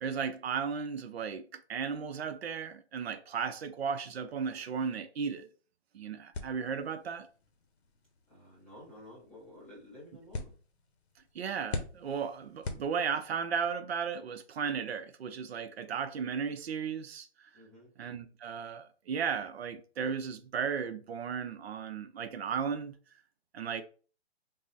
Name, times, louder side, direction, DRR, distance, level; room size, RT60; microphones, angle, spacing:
voice 1, 0.0-5.5 5.9-7.3 11.3-17.3 18.0-22.9 23.5-23.8, right 6 dB, 65° right, 0.6 m, -35 dB
sound 1, 6.3-13.5, left 3 dB, 65° left, 0.9 m, -45 dB
voice 2, 8.3-10.5 17.5-17.9, left 1 dB, 5° left, 0.5 m, -52 dB
3.7 x 2.0 x 3.9 m
hypercardioid pair, 155°, 34 cm